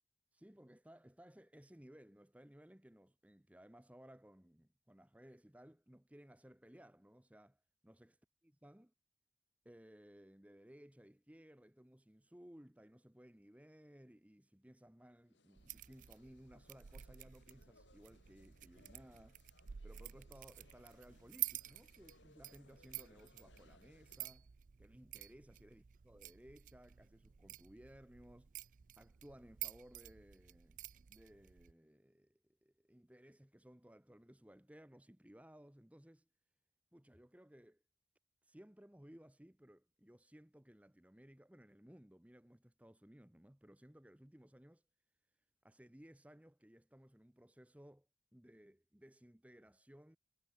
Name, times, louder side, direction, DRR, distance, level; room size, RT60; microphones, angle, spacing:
voice 1, 0.3-8.1 8.6-8.9 9.6-19.4 19.8-24.5 24.8-28.5 29.0-30.8 31.1-36.3 36.9-37.8 38.4-44.8 45.6-48.1 48.3-50.2, equal, 10° right, 0.8 m, -60 dB
sound 1, 15.3-24.4, left 2 dB, 80° left, 4.9 m, -70 dB
sound 2, 15.6-31.7, right 14 dB, 45° right, 0.4 m, -50 dB
head